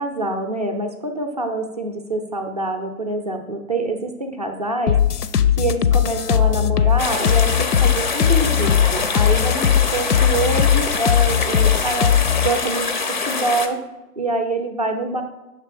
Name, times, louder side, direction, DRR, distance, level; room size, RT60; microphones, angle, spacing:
voice 1, 0.0-5.2 5.6-9.7 9.9-12.1 12.4-13.8 14.2-15.2, right 2 dB, 30° right, 5 dB, 0.4 m, -25 dB
sound 1, 4.9-12.5, left 9 dB, 90° left, 0.5 m, -18 dB
sound 2, 7.0-13.7, left 4 dB, 35° left, 0.4 m, -25 dB
6.8 x 3.3 x 4.8 m, 0.99 s
figure-of-eight pair, 135°, 45 cm